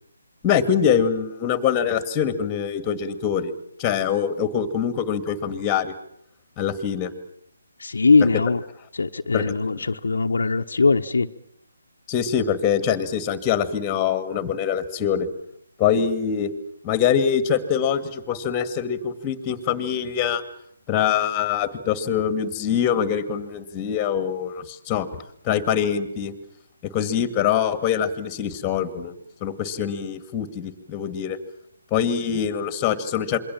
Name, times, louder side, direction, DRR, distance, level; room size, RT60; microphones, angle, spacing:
voice 1, 0.4-3.5 3.8-5.9 6.6-7.1 9.3-9.5 12.1-15.3 15.8-16.5 16.8-20.4 20.9-25.1 25.4-26.3 26.9-29.1 29.4-31.4 31.9-33.4, left 8 dB, 20° left, 12 dB, 2.3 m, -24 dB
voice 2, 7.8-8.6 8.9-11.3, left 4 dB, 65° left, 5 dB, 1.1 m, -20 dB
27.0 x 23.0 x 7.5 m, 0.70 s
figure-of-eight pair, 150°, 0 cm